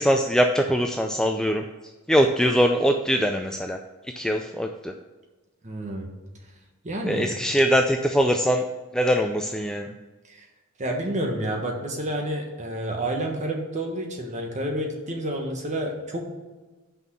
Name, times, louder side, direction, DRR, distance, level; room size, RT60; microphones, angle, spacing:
voice 1, 0.0-1.6 2.1-3.8 4.2-4.9 7.0-8.6 8.9-9.9, equal, 5° left, 4 dB, 0.3 m, -22 dB
voice 2, 5.6-6.1 6.8-7.3 10.3-10.4 10.8-16.3, right 1 dB, 35° right, 1 dB, 1.4 m, -29 dB
6.2 x 5.4 x 6.9 m, 1.2 s
head